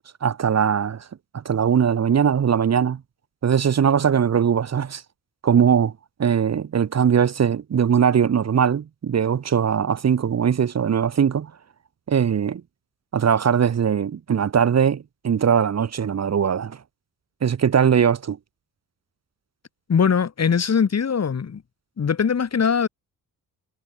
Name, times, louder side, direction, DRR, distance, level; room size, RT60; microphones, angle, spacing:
voice 1, 0.2-1.1 1.3-3.0 3.4-5.0 5.4-5.9 6.2-11.5 12.1-12.6 13.1-16.8 17.4-18.4, right 7 dB, 45° right, 1.3 m, -20 dB
voice 2, 19.9-21.6 22.0-22.9, left 6 dB, 45° left, 2.9 m, -21 dB
cardioid pair, 105°, 37 cm